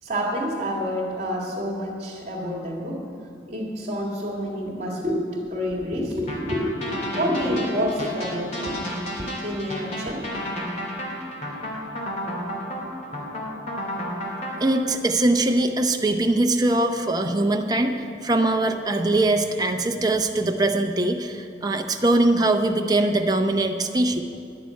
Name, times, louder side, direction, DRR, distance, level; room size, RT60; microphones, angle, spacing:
voice 1, 0.0-3.1 3.5-5.2 5.4-8.9 9.2-10.4, equal, 40° right, -6 dB, 2.2 m, -28 dB
sound 1, 6.3-14.8, equal, 40° left, 2.2 m, -32 dB
voice 2, 14.6-17.9 18.2-24.2, right 2 dB, 20° right, 4 dB, 0.7 m, -22 dB
11.5 x 6.9 x 9.5 m, 2.4 s
head